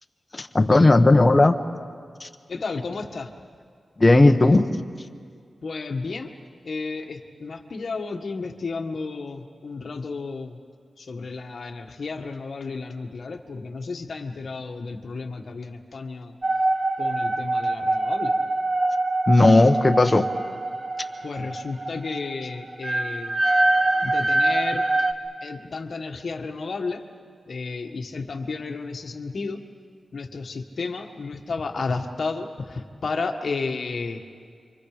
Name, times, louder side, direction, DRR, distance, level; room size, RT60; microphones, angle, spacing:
voice 1, 0.3-1.6 2.2-2.3 4.0-4.7 19.3-20.3, left 2 dB, 20° left, 6 dB, 1.1 m, -16 dB
voice 2, 2.5-3.3 5.6-6.3 6.6-10.6 11.0-16.3 17.0-18.3 21.2-23.4 24.0-24.8 25.4-27.0 27.5-29.6 30.1-34.2, left 4 dB, 55° left, 3 dB, 1.6 m, -32 dB
sound 1, 16.4-25.1, right 2 dB, 25° right, 1.1 m, -24 dB
29.5 x 24.5 x 5.1 m, 2.1 s
wide cardioid pair, 145°, 0 cm